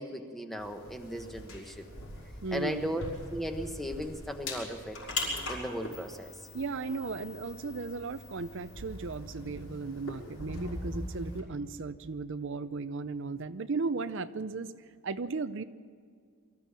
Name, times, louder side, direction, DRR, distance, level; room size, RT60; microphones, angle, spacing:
voice 1, 0.0-1.9 2.5-5.0 5.5-6.3, equal, ahead, 5 dB, 1.2 m, -36 dB
sound 1, 0.6-11.4, left 2 dB, 70° left, 5.8 m, -41 dB
voice 2, 2.4-2.9 6.5-15.6, right 4 dB, 55° right, 10 dB, 0.6 m, -36 dB
24.0 x 14.5 x 7.5 m, 2.1 s
head